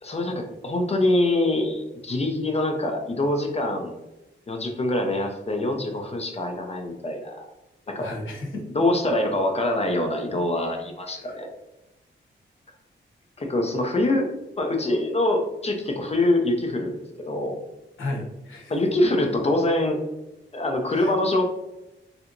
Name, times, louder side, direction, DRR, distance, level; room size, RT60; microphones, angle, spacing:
voice 1, 0.0-3.9 4.5-7.5 7.9-8.1 8.8-11.5 13.4-14.3 14.6-17.0 17.2-17.6 18.7-20.0 20.5-21.5, left 1 dB, 30° left, 3 dB, 0.5 m, -24 dB
voice 2, 8.0-8.6 11.1-11.4 18.0-18.8 19.2-19.3 20.9-21.1, left 2 dB, 80° left, -2 dB, 1.0 m, -34 dB
3.3 x 2.8 x 2.5 m, 0.96 s
wide cardioid pair, 135°, 20 cm